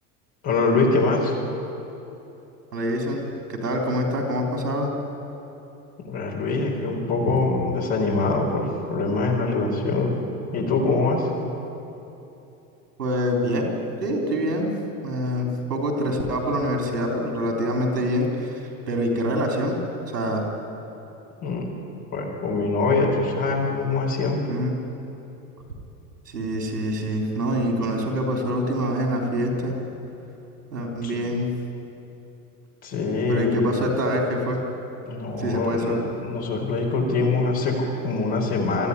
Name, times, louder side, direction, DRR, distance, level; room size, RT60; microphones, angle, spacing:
voice 1, 0.4-1.4 6.0-10.2 10.5-11.3 21.4-21.7 22.1-24.4 31.0-31.2 32.8-33.6 35.1-38.9, left 3 dB, 60° left, -2 dB, 4.5 m, -24 dB
voice 2, 2.7-4.9 13.0-13.7 14.0-14.7 15.0-19.8 20.1-20.5 24.5-24.7 26.3-29.8 30.7-31.5 33.3-34.6 35.4-36.0, equal, 90° right, 1 dB, 3.7 m, -25 dB
21.0 x 14.0 x 9.6 m, 2.9 s
hypercardioid pair, 80°, 47 cm